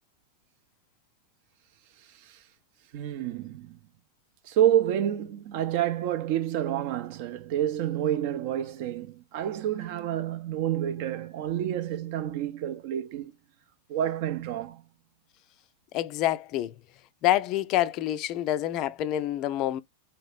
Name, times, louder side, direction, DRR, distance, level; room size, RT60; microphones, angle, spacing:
voice 1, 2.9-3.8 4.4-13.3 13.9-14.8, right 11 dB, 50° right, 0.6 m, -28 dB
voice 2, 15.9-16.8 17.2-19.8, left 13 dB, 40° left, 0.3 m, -27 dB
3.1 x 3.0 x 3.3 m
figure-of-eight pair, 90°, 0 cm